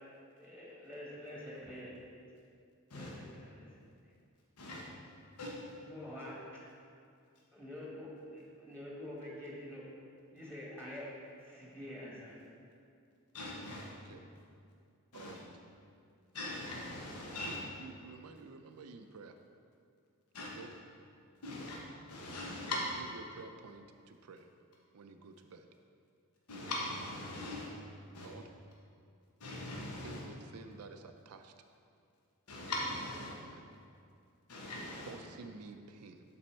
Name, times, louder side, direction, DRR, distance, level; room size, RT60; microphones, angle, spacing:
voice 1, 0.4-2.0 2.9-3.9 5.8-6.6 7.5-9.9 10.3-11.1 11.4-12.3 13.5-14.0, left 1 dB, 5° left, -5 dB, 1.2 m, -47 dB
voice 2, 13.3-13.9 15.1-15.3 16.3-17.6 20.3-20.5 21.4-21.8 22.1-22.8 26.5-27.7 28.1-28.3 29.4-30.2 32.5-33.3 34.5-35.1, left 2 dB, 80° left, -3 dB, 1.1 m, -40 dB
voice 3, 15.1-15.5 17.4-19.4 20.5-20.7 22.7-24.5 24.9-25.7 28.2-28.5 30.0-31.5 33.2-33.6 35.1-36.2, right 4 dB, 85° right, 7 dB, 0.5 m, -51 dB
11.5 x 4.2 x 4.4 m, 2.4 s
head